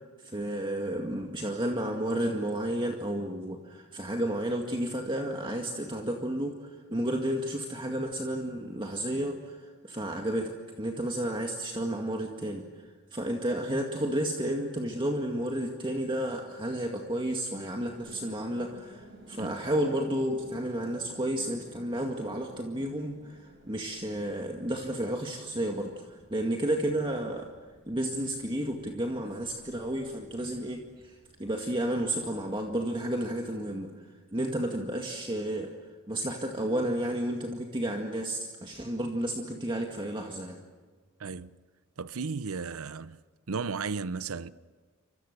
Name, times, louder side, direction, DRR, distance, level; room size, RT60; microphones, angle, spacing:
voice 1, 0.2-27.5 27.9-35.7 36.1-40.6, right 1 dB, 25° right, 2.0 m, -32 dB
sound 1, 17.8-32.8, right 1 dB, 60° right, 4.8 m, -55 dB
voice 2, 41.2-41.5 42.0-43.2 43.5-44.5, right 4 dB, 85° right, 0.7 m, -34 dB
29.5 x 25.5 x 6.8 m
head